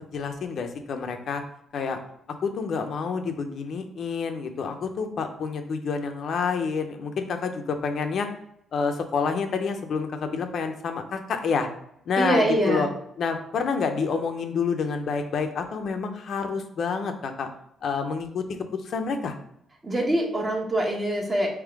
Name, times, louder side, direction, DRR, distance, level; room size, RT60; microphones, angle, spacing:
voice 1, 0.1-1.4 1.7-2.0 2.4-8.3 8.7-11.7 12.1-12.9 13.2-17.5 17.8-18.4 18.7-19.3, left 5 dB, 65° left, 5 dB, 0.6 m, -28 dB
voice 2, 12.2-12.9 19.8-21.5, right 1 dB, 30° right, 0 dB, 1.2 m, -24 dB
3.7 x 3.1 x 4.7 m, 0.74 s
cardioid pair, 75°, 0 cm